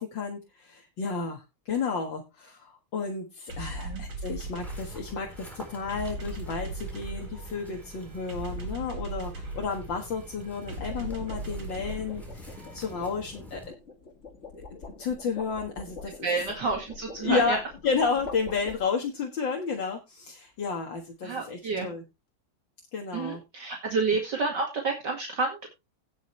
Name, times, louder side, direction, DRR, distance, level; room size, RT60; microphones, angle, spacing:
voice 1, 0.0-13.6 15.0-16.3 17.2-17.6 17.8-22.0 22.9-23.4, left 5 dB, 65° left, 1 dB, 2.4 m, -32 dB
sound 1, 3.5-13.1, right 2 dB, 85° right, 3.5 m, -39 dB
sound 2, 4.6-13.7, left 1 dB, ahead, 4.1 m, -47 dB
sound 3, 4.9-5.2 10.3-19.2, left 4 dB, 35° left, 1.8 m, -45 dB
voice 2, 16.2-17.6 21.2-21.9 23.1-25.7, right 4 dB, 55° right, 1 dB, 2.6 m, -29 dB
17.0 x 6.3 x 3.2 m, 0.24 s
omnidirectional pair, 2.2 m